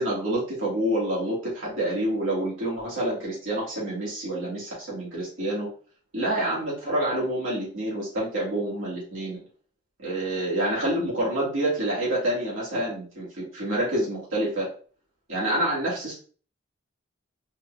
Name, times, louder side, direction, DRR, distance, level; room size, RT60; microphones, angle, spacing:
voice 1, 0.0-5.7 6.1-9.4 10.0-14.7 15.3-16.1, right 1 dB, 85° right, -7 dB, 2.1 m, -27 dB
4.4 x 3.3 x 2.5 m, 0.41 s
head